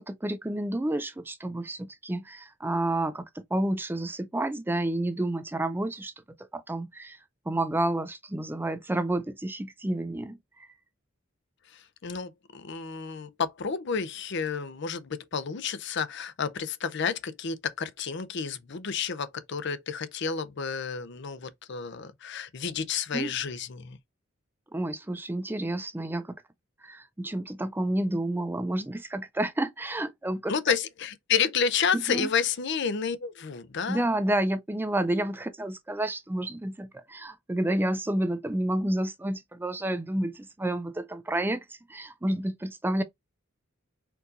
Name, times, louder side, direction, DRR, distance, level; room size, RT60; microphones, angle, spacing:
voice 1, 0.0-6.1 6.5-7.2 7.5-10.4 23.1-23.3 24.7-26.4 26.8-30.5 31.9-32.3 33.9-43.0, right 1 dB, 10° right, 0.4 m, -30 dB
voice 2, 11.7-24.0 30.5-34.0, left 6 dB, 60° left, 0.6 m, -30 dB
4.5 x 2.7 x 3.8 m
head